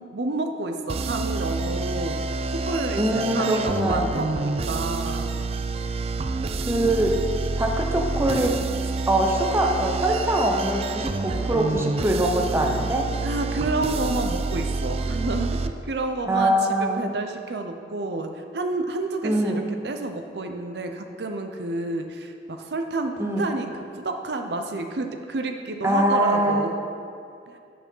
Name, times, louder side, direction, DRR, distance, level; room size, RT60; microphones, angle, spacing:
voice 1, 0.0-2.2 2.5-5.3 6.8-7.1 13.2-23.7 24.0-26.8 27.5-27.6, right 2 dB, 65° right, 5 dB, 0.7 m, -30 dB
sound 1, 0.9-15.7, right 3 dB, 35° right, 0.3 m, -28 dB
voice 2, 3.0-4.1 6.7-7.2 7.6-8.6 9.1-13.1 16.3-17.0 19.2-19.6 23.2-23.5 25.8-26.6, right 1 dB, 15° right, 1 dB, 0.7 m, -23 dB
9.5 x 6.0 x 5.5 m, 2.5 s
head